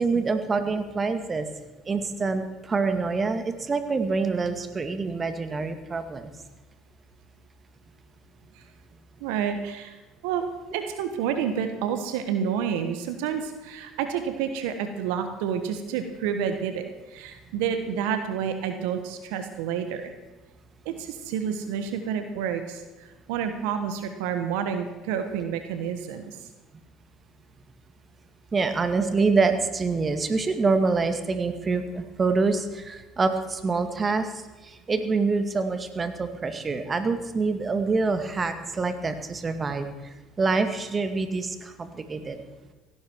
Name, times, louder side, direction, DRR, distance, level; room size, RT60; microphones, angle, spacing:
voice 1, 0.0-1.5 1.9-6.3 28.5-39.9 40.4-42.4, right 4 dB, 30° right, 8 dB, 2.0 m, -26 dB
voice 2, 9.2-10.0 10.2-10.4 10.7-20.1 20.8-26.4, right 8 dB, 75° right, 8 dB, 1.4 m, -29 dB
17.0 x 16.0 x 4.7 m, 1.2 s
hypercardioid pair, 65°, 0 cm